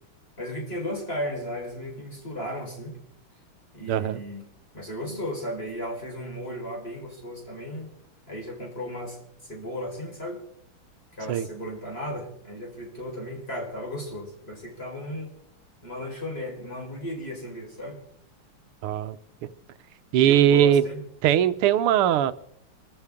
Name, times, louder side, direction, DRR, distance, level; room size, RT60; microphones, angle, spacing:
voice 1, 0.4-3.0 3.7-4.4 4.7-7.9 8.3-10.4 11.1-15.3 15.8-18.0 20.2-21.0, equal, 25° left, 0 dB, 4.9 m, -35 dB
voice 2, 3.9-4.2 11.3-11.5 18.8-19.2 20.1-20.8 21.2-22.3, right 10 dB, 90° right, 13 dB, 1.7 m, -20 dB
27.5 x 14.0 x 3.6 m, 0.71 s
omnidirectional pair, 2.4 m